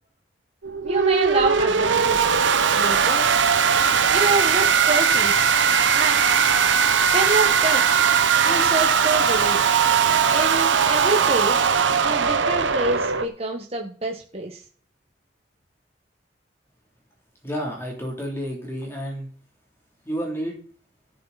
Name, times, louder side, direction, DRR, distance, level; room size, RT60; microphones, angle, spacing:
Tortured distorted scream, 0.6-13.3, right 6 dB, 85° right, 1.0 m, -19 dB
voice 1, 0.8-2.2 2.7-3.3 4.1-5.4 5.9-6.2 7.1-7.9 8.4-9.6 10.3-11.6 12.0-14.6, right 2 dB, 35° right, 1 dB, 1.6 m, -26 dB
voice 2, 17.4-19.3 20.0-20.5, equal, 15° left, -2 dB, 3.3 m, -30 dB
16.0 x 7.7 x 4.3 m, 0.41 s
head